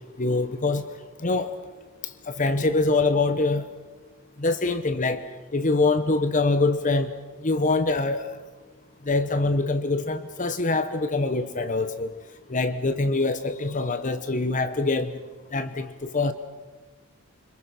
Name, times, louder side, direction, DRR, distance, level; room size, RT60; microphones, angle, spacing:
voice 1, 0.2-0.8 1.2-1.5 2.3-3.6 4.4-5.2 5.5-7.1 7.4-8.3 9.1-12.1 12.5-15.2 15.5-16.3, left 3 dB, 35° left, 11 dB, 1.0 m, -24 dB
29.0 x 26.0 x 6.2 m, 1.3 s
head